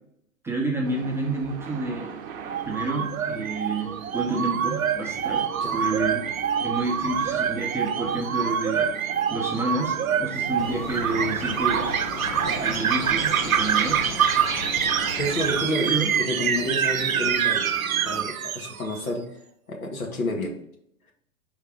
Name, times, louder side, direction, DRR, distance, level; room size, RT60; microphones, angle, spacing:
voice 1, 0.4-2.1 2.6-5.4 5.7-6.2 6.6-11.9 12.6-14.0 15.8-16.1, right 2 dB, 5° right, -2 dB, 0.6 m, -29 dB
sound 1, 0.8-18.3, right 7 dB, 40° right, 0.8 m, -41 dB
sound 2, 2.5-19.0, right 8 dB, 70° right, 0.6 m, -26 dB
sound 3, 10.6-15.7, left 7 dB, 35° left, 0.4 m, -36 dB
voice 2, 15.2-17.8 18.0-19.3 19.7-20.6, left 1 dB, 75° left, 1 dB, 1.5 m, -30 dB
5.6 x 3.6 x 5.0 m, 0.72 s
figure-of-eight pair, 105°, 43 cm